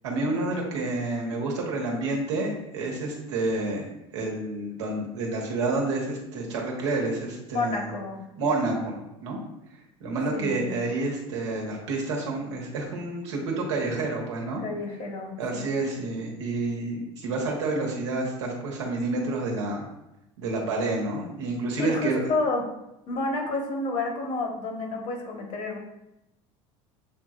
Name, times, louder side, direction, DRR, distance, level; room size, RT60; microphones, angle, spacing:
voice 1, 0.0-3.9 4.1-7.9 8.4-9.4 10.0-14.6 15.4-19.9 20.4-22.2, right 2 dB, 90° right, -1 dB, 1.2 m, -29 dB
voice 2, 7.5-8.2 10.3-10.7 14.6-15.6 21.8-22.6 23.1-25.8, left 2 dB, 50° left, 1 dB, 1.3 m, -30 dB
7.1 x 3.0 x 2.5 m, 0.90 s
hypercardioid pair, 90°, 15 cm